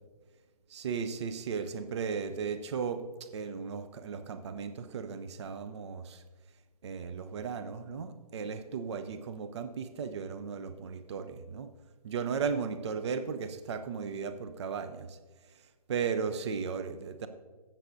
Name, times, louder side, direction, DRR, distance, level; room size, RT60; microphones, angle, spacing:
voice 1, 0.7-6.2 6.8-11.7 12.0-15.2 15.5-17.3, right 6 dB, 45° right, 9 dB, 0.5 m, -36 dB
15.0 x 7.5 x 2.6 m, 1.4 s
hypercardioid pair, 150°, 20 cm